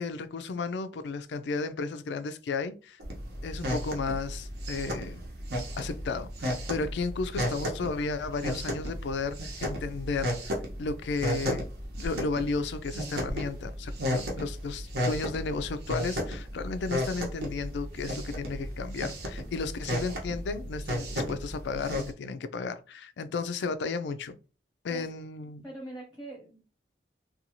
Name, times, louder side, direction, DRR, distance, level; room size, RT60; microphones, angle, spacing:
voice 1, 0.0-3.0 3.4-5.2 5.8-11.7 12.0-24.4 24.8-25.7, left 4 dB, 80° left, 0.3 m, -34 dB
sound 1, 3.0-22.1, equal, 70° right, 0.8 m, -34 dB
voice 2, 24.9-25.2 25.6-26.6, right 1 dB, ahead, 0.7 m, -43 dB
2.6 x 2.3 x 2.9 m
head